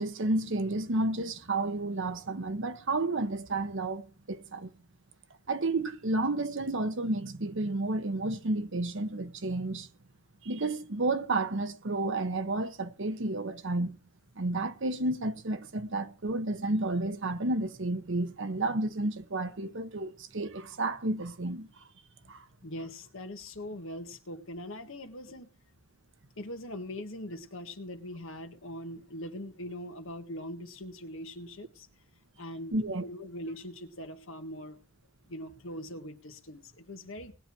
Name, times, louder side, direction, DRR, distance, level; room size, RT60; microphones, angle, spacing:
voice 1, 0.0-4.7 5.5-9.9 10.4-14.0 14.4-21.7 22.3-22.4 32.7-33.0, right 2 dB, 60° right, 1.1 m, -31 dB
voice 2, 22.6-25.5 26.4-31.9 32.4-32.8 33.0-34.8 35.3-37.3, left 1 dB, 65° left, 1.7 m, -41 dB
19.0 x 9.2 x 4.6 m
head